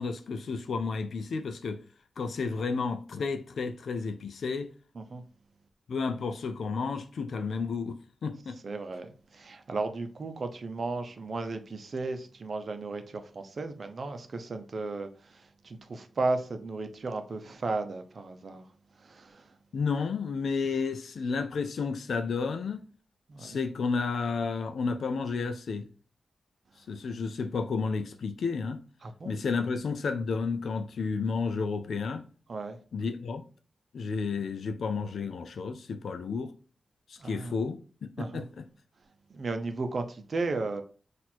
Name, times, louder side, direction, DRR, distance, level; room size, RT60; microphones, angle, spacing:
voice 1, 0.0-1.8 2.2-4.7 5.9-8.6 19.7-22.8 23.4-25.9 26.9-28.8 29.2-32.2 32.9-33.4 33.9-36.5 37.1-37.8 38.2-38.6, left 4 dB, 80° left, 0.4 m, -31 dB
voice 2, 8.6-18.6 19.0-19.5 23.3-23.6 29.0-29.4 32.5-32.8 37.2-37.6 38.2-38.4 39.3-40.8, right 3 dB, 55° right, 0.6 m, -35 dB
4.2 x 2.5 x 4.3 m
wide cardioid pair, 105°, 0 cm